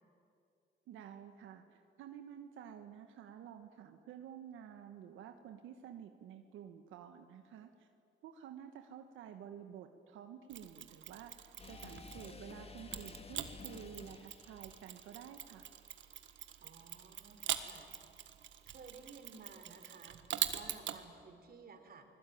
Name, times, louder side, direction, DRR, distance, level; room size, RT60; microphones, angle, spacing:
voice 1, 0.9-7.9 8.2-15.7, right 9 dB, 90° right, 6 dB, 1.3 m, -51 dB
Mechanisms, 10.5-12.4 12.9-21.0, right 10 dB, 70° right, 1.7 m, -43 dB
sound 1, 11.6-15.4, left 3 dB, 30° left, 2.2 m, -52 dB
voice 2, 16.6-17.9 18.7-20.2 20.5-22.1, right 5 dB, 50° right, 7 dB, 3.6 m, -55 dB
29.0 x 20.5 x 9.3 m, 2.6 s
cardioid pair, 90°, 20 cm